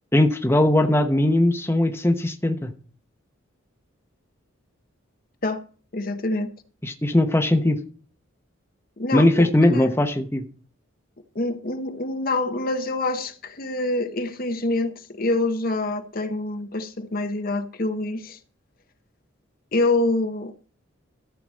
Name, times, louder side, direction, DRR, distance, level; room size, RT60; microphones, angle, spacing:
voice 1, 0.1-2.7 6.8-7.8 9.1-10.4, left 1 dB, 10° left, 0.9 m, -19 dB
voice 2, 5.9-6.5 9.0-9.9 11.3-18.4 19.7-20.7, left 2 dB, 45° left, 0.9 m, -26 dB
14.0 x 4.8 x 7.5 m
head